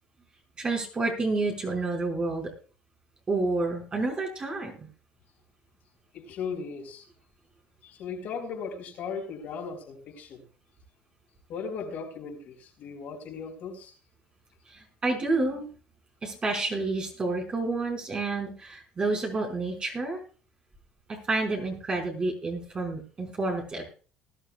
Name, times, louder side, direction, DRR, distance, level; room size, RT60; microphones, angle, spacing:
voice 1, 0.6-2.5 3.3-4.9 14.7-15.7 16.2-20.2 21.1-23.8, right 3 dB, 25° right, 2 dB, 4.9 m, -29 dB
voice 2, 6.1-7.0 7.8-10.4 11.5-13.9, left 5 dB, 60° left, 1 dB, 4.4 m, -37 dB
20.5 x 12.0 x 2.3 m, 0.38 s
cardioid pair, 110°, 3 cm